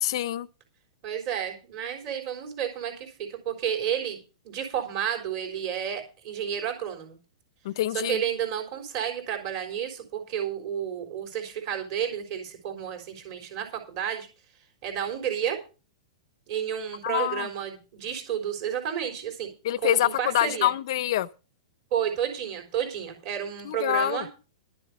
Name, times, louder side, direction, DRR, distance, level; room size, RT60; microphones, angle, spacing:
voice 1, 0.0-0.5 7.6-8.2 17.0-17.5 19.6-21.3 23.6-24.3, left 13 dB, 45° left, 0.6 m, -26 dB
voice 2, 1.0-4.2 4.4-7.2 7.9-14.3 14.8-15.6 16.5-19.5 19.8-20.7 21.9-24.3, right 9 dB, 30° right, 3.9 m, -31 dB
12.0 x 7.4 x 6.7 m
supercardioid pair, 175°, 4 cm